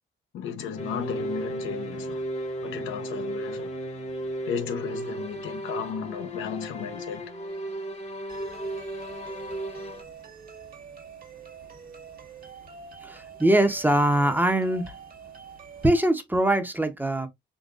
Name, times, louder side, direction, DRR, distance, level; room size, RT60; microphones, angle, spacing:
voice 1, 0.3-2.2 2.6-3.7 4.5-7.2, left 7 dB, 80° left, 0.7 m, -34 dB
sound 1, 0.8-10.0, right 1 dB, 35° left, 0.9 m, -34 dB
sound 2, 8.3-16.1, right 6 dB, 45° right, 1.3 m, -45 dB
voice 2, 13.0-14.9 15.8-17.3, right 1 dB, 10° right, 0.7 m, -22 dB
3.9 x 2.8 x 2.4 m
cardioid pair, 90°, 20 cm